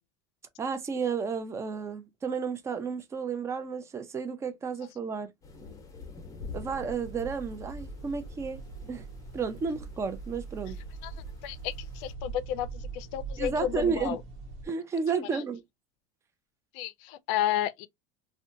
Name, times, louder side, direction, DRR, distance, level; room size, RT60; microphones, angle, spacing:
voice 1, 0.6-5.3 6.5-8.6 8.9-9.1 9.3-10.8 13.4-14.2 14.6-15.6, right 5 dB, 20° right, 0.5 m, -32 dB
sound 1, 5.4-12.1, left 4 dB, 20° left, 0.8 m, -48 dB
sound 2, 6.5-14.7, right 4 dB, 75° right, 1.0 m, -42 dB
voice 2, 11.4-14.2 15.3-15.4 16.7-17.9, left 12 dB, 65° left, 0.4 m, -32 dB
2.7 x 2.2 x 2.6 m
supercardioid pair, 135°, 16 cm